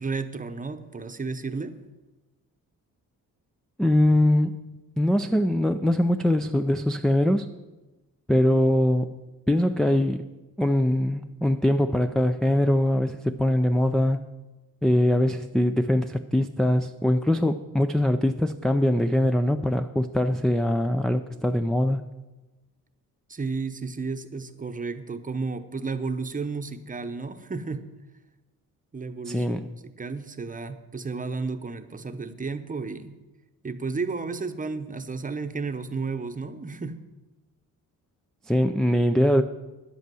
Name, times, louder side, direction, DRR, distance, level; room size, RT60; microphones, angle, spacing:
voice 1, 0.0-1.8 23.3-27.9 28.9-29.6 29.8-33.2 33.6-37.0, right 4 dB, 25° right, 9 dB, 0.9 m, -32 dB
voice 2, 3.8-4.6 5.0-7.5 8.3-9.2 9.5-10.3 10.6-14.2 14.8-22.0 29.3-29.7 38.5-39.4, left 1 dB, ahead, 9 dB, 0.4 m, -22 dB
10.0 x 8.2 x 7.6 m, 1.1 s
cardioid pair, 105°, 35 cm